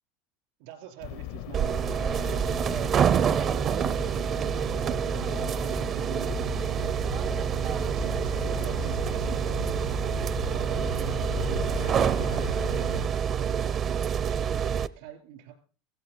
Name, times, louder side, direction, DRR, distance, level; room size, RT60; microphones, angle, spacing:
voice 1, 0.6-7.2 7.8-9.7 10.4-12.4 12.7-13.0 13.3-14.7 15.0-15.5, right 11 dB, 75° right, 6 dB, 3.6 m, -45 dB
sound 1, 1.0-13.1, left 14 dB, 65° left, 0.7 m, -38 dB
sound 2, 1.5-14.9, right 8 dB, 35° right, 0.6 m, -27 dB
16.0 x 15.5 x 4.1 m, 0.37 s
supercardioid pair, 135°, 0 cm